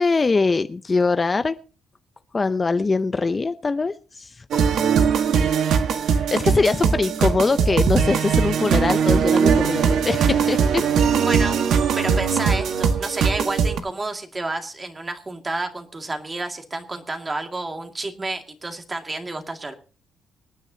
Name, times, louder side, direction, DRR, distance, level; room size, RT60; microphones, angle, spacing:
voice 1, 0.0-1.5 2.3-4.4 6.1-10.8, left 3 dB, 30° left, 11 dB, 0.6 m, -22 dB
sound 1, 4.5-13.8, right 6 dB, 75° right, 1.6 m, -20 dB
voice 2, 11.2-11.6 11.9-19.7, right 2 dB, 25° right, 5 dB, 2.2 m, -30 dB
25.0 x 9.6 x 2.9 m, 0.36 s
cardioid pair, 90°, 0 cm